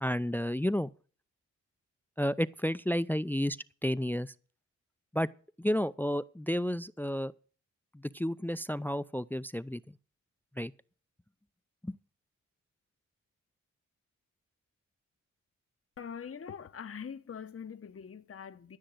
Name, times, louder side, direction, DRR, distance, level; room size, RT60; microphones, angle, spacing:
voice 1, 0.0-0.9 2.2-3.6 3.8-4.3 5.1-5.3 5.6-7.3 8.1-9.8 10.6-10.7 11.8-12.0, equal, 5° left, 0.5 m, -31 dB
voice 2, 16.0-18.8, left 7 dB, 45° left, 0.9 m, -43 dB
14.0 x 6.4 x 8.0 m
supercardioid pair, 45°, 31 cm